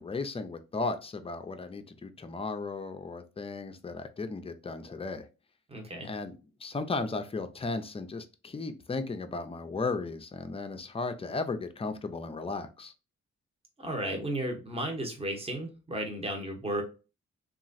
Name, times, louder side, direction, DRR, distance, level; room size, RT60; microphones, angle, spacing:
voice 1, 0.0-5.3 6.0-6.3 6.6-12.9, left 3 dB, 20° left, 8 dB, 0.4 m, -35 dB
voice 2, 5.7-6.1 13.8-16.8, right 1 dB, 20° right, 3 dB, 0.8 m, -34 dB
2.9 x 2.4 x 2.5 m, 0.32 s
cardioid pair, 70°, 30 cm